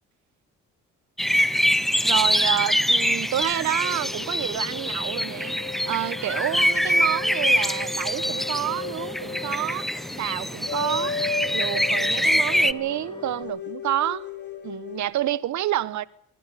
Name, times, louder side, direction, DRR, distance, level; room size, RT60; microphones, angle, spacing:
sound 1, 1.2-12.7, equal, ahead, 0.7 m, -24 dB
voice 1, 2.0-5.5 5.9-9.9 10.2-11.2 11.5-14.3 14.6-16.1, right 12 dB, 70° right, 1.0 m, -28 dB
sound 2, 3.8-15.1, left 5 dB, 35° left, 3.7 m, -36 dB
sound 3, 8.1-13.4, left 3 dB, 15° left, 4.2 m, -45 dB
23.5 x 14.5 x 8.3 m
cardioid pair, 90°, 30 cm